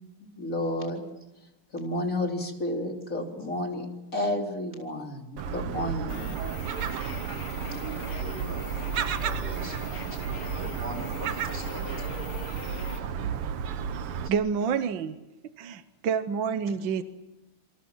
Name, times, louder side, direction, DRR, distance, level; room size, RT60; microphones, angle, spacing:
voice 1, 0.2-1.0 1.7-6.3, left 1 dB, 35° left, 3.7 m, -31 dB
Gull seagull, 5.4-14.3, right 7 dB, 90° right, 2.1 m, -32 dB
sound 1, 6.1-13.0, left 6 dB, 70° left, 2.6 m, -43 dB
voice 2, 7.7-8.8 9.2-12.2 13.0-13.4 14.2-14.3, equal, 25° right, 6.8 m, -43 dB
voice 3, 14.3-15.2 15.6-17.0, right 6 dB, 65° right, 1.7 m, -28 dB
28.0 x 24.5 x 7.3 m
omnidirectional pair, 2.4 m